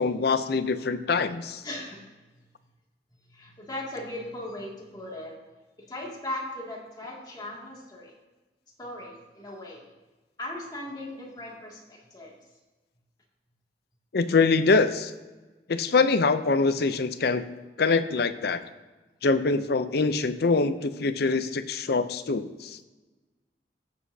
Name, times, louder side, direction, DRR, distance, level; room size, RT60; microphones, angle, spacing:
voice 1, 0.0-1.6 14.1-15.1 15.7-17.4 17.8-18.6 19.2-22.8, left 4 dB, 65° left, 11 dB, 0.6 m, -24 dB
voice 2, 1.6-2.1 3.3-5.4 5.8-8.2 8.8-9.9 10.4-12.4, left 1 dB, 25° left, -3 dB, 2.3 m, -38 dB
15.5 x 7.2 x 2.8 m, 1.2 s
head